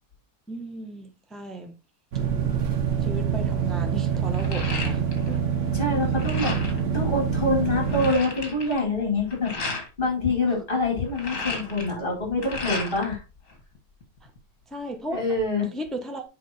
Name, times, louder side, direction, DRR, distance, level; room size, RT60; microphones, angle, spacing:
voice 1, 0.5-1.7 3.0-5.4 10.4-10.6 14.2-14.3 14.7-16.2, right 1 dB, ahead, 1.0 m, -36 dB
sound 1, 2.1-8.1, right 7 dB, 50° right, 1.2 m, -25 dB
sound 2, 3.2-3.3 3.6-5.4 5.7-6.9 7.4-7.5 7.6-9.9 10.9-13.2 13.5-14.4, left 3 dB, 50° left, 2.4 m, -34 dB
voice 2, 5.7-6.6 6.9-13.2 15.1-15.7, left 2 dB, 30° left, 4.8 m, -26 dB
7.7 x 5.2 x 4.4 m
omnidirectional pair, 1.8 m